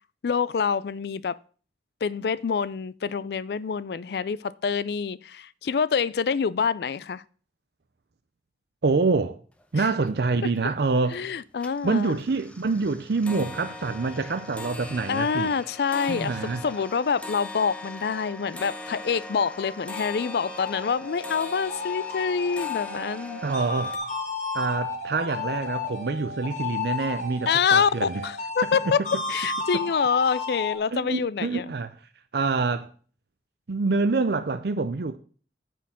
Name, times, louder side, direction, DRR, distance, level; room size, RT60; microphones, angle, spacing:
voice 1, 0.2-1.4 2.0-7.2 9.7-9.9 11.1-12.2 15.1-16.4 16.6-23.4 27.5-29.0 29.3-31.6, left 6 dB, 65° left, 0.4 m, -26 dB
voice 2, 8.8-9.4 9.7-11.2 11.8-15.5 16.1-16.6 23.4-24.0 24.5-28.2 28.8-28.9 30.9-31.9 32.3-32.9 33.7-35.2, right 3 dB, 65° right, 0.5 m, -26 dB
sound 1, 9.6-9.7 10.0-10.6 11.0-11.3 11.6-24.0, left 2 dB, 5° left, 0.8 m, -41 dB
sound 2, 19.0-30.8, left 4 dB, 45° left, 1.8 m, -33 dB
9.1 x 4.5 x 7.3 m
head